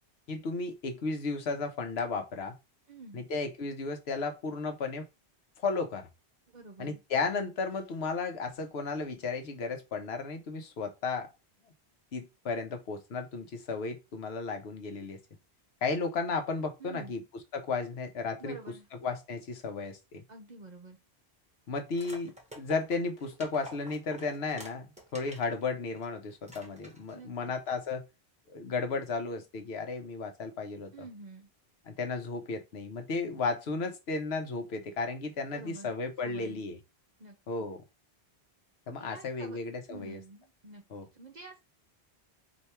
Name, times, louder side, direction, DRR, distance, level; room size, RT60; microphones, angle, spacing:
voice 1, 0.3-2.5 3.1-5.1 5.6-6.1 6.8-11.3 12.1-15.2 15.8-17.2 17.5-18.6 19.0-20.2 21.7-24.9 25.1-28.1 28.5-30.9 31.9-36.8 37.5-37.8 38.9-40.2 40.9-41.1, left 4 dB, 75° left, 1.0 m, -34 dB
voice 2, 2.9-3.3 6.5-7.0 16.8-17.1 18.4-18.9 20.3-21.0 27.1-27.3 30.9-31.5 35.5-35.9 36.2-36.6 37.2-37.4 38.9-39.6 39.9-40.8 41.1-41.6, right 3 dB, 50° right, 0.7 m, -48 dB
sound 1, 21.9-25.5 26.0-26.1 26.4-27.2, equal, 5° right, 1.0 m, -49 dB
3.3 x 2.8 x 4.3 m
omnidirectional pair, 1.1 m